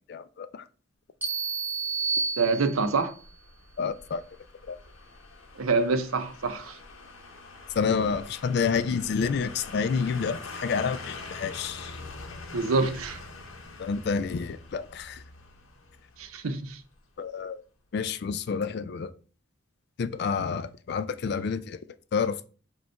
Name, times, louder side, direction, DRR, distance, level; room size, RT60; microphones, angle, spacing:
voice 1, 0.1-0.6 3.8-4.2 4.7-4.8 7.8-12.0 13.8-15.2 17.2-17.6 17.9-19.1 20.0-21.8 22.1-22.4, left 5 dB, 50° left, 0.3 m, -29 dB
sound 1, 1.2-3.1, right 4 dB, 10° right, 0.7 m, -30 dB
sound 2, 2.1-17.1 17.4-17.5, left 3 dB, 75° left, 0.8 m, -44 dB
voice 2, 2.4-3.1 5.6-6.8 12.5-13.2 16.2-16.8, right 4 dB, 85° right, 0.6 m, -26 dB
5.0 x 2.3 x 4.4 m
head